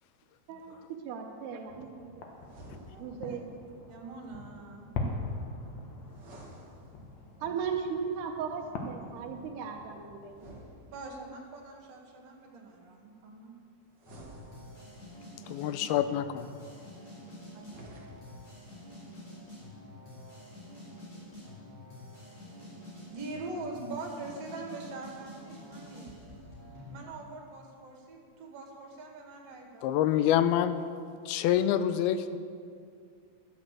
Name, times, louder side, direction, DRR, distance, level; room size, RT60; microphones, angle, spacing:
voice 1, 1.0-2.2 3.0-3.8 7.4-10.6 11.2-11.3 17.5-17.7, right 6 dB, 85° right, 1 dB, 2.9 m, -37 dB
sound 1, 1.7-10.3, left 2 dB, 60° left, 2.0 m, -42 dB
sound 2, 2.4-3.4 6.1-7.4 10.3-11.5 13.9-15.2 17.5-18.5, right 1 dB, 65° right, 1.0 m, -52 dB
voice 2, 2.7-3.5 3.9-4.9 10.9-13.6 23.1-26.1 26.9-29.9, right 3 dB, 45° right, -1 dB, 2.6 m, -43 dB
sound 3, 14.1-27.0, left 1 dB, 40° left, 5.0 m, -48 dB
voice 3, 15.5-16.5 29.8-30.8 31.3-32.4, left 10 dB, 80° left, 11 dB, 2.4 m, -26 dB
13.0 x 8.0 x 7.4 m, 2.2 s
omnidirectional pair, 4.6 m